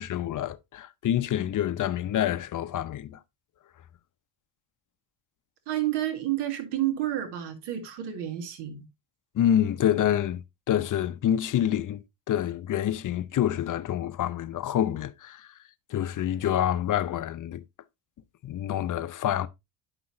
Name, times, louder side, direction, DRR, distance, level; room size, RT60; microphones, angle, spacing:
voice 1, 0.0-3.2 9.3-12.0 12.3-15.5 15.9-17.6 18.4-19.5, left 11 dB, 50° left, 0.8 m, -27 dB
voice 2, 5.7-8.9, right 13 dB, 85° right, 2.0 m, -30 dB
9.7 x 6.0 x 2.7 m
cardioid pair, 95°, 40 cm